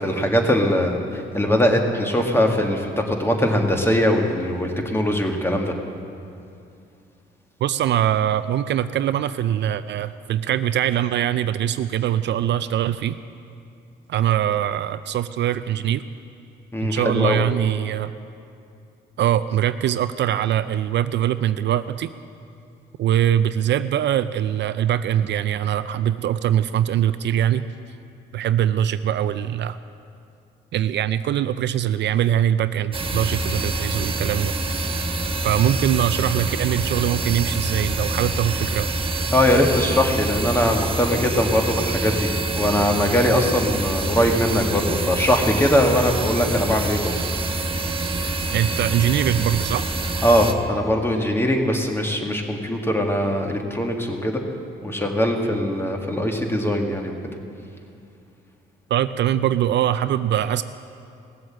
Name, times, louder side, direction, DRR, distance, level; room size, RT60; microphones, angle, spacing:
voice 1, 0.0-5.7 16.7-17.4 39.3-42.3 42.6-47.5 50.2-54.4 54.8-57.1, equal, 10° left, 2 dB, 1.8 m, -21 dB
voice 2, 7.6-13.2 14.1-16.0 16.8-18.1 19.2-22.1 23.0-27.6 28.3-29.8 30.7-34.5 35.4-38.9 48.5-49.9 58.9-60.6, right 11 dB, 65° right, 13 dB, 0.4 m, -22 dB
sound 1, 32.9-50.5, right 2 dB, 25° right, 1.1 m, -26 dB
18.0 x 7.8 x 7.6 m, 2.5 s
cardioid pair, 90°, 20 cm